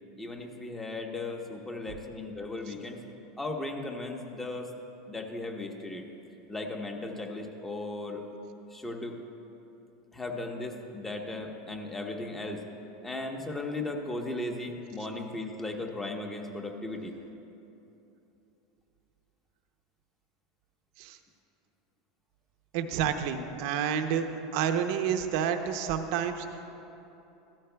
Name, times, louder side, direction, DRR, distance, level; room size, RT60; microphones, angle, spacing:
voice 1, 0.2-3.0 3.4-4.7 5.1-6.0 6.5-8.2 8.7-9.2 10.1-12.6 13.0-17.2, left 2 dB, 10° left, 3 dB, 1.0 m, -36 dB
voice 2, 22.7-24.3 24.5-26.5, right 8 dB, 65° right, 7 dB, 0.7 m, -29 dB
15.0 x 13.0 x 2.3 m, 3.0 s
supercardioid pair, 115°, 2 cm